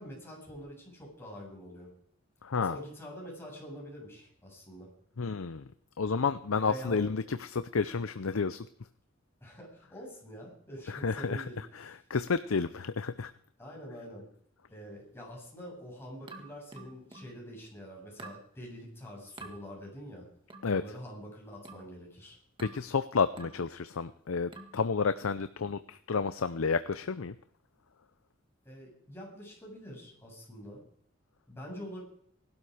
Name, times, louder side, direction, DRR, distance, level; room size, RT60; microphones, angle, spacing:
voice 1, 0.0-1.9 2.6-4.9 6.5-7.1 9.4-11.6 13.6-14.2 14.7-20.3 20.6-22.4 28.6-30.8 31.5-32.0, equal, 10° left, -3 dB, 7.9 m, -45 dB
voice 2, 2.4-2.8 5.2-5.7 6.0-8.7 10.9-13.3 20.6-20.8 22.6-27.3, left 5 dB, 85° left, 12 dB, 0.6 m, -31 dB
sound 1, 16.3-17.4 18.2-18.5 19.4-19.6 20.5-20.8 21.6-21.9 22.6-22.9 23.4-23.6 24.5-24.8, right 2 dB, 25° right, 1.8 m, -48 dB
19.0 x 12.5 x 5.0 m, 0.64 s
head